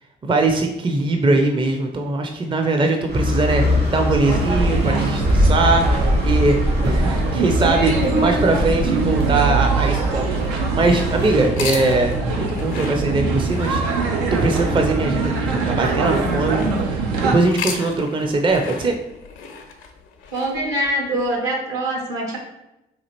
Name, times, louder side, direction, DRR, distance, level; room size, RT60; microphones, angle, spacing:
voice 1, 0.2-13.8 14.3-18.9, right 2 dB, 25° right, 4 dB, 0.5 m, -21 dB
sound 1, 3.1-11.5, left 1 dB, 50° right, 1.4 m, -23 dB
sound 2, 4.2-17.4, right 3 dB, 85° right, 0.5 m, -22 dB
sound 3, 11.5-16.8 17.3-21.3, left 6 dB, 70° left, 0.6 m, -35 dB
voice 2, 20.3-22.4, right 1 dB, 70° right, 0 dB, 1.1 m, -24 dB
4.1 x 2.4 x 2.9 m, 0.93 s
hypercardioid pair, 45°, 21 cm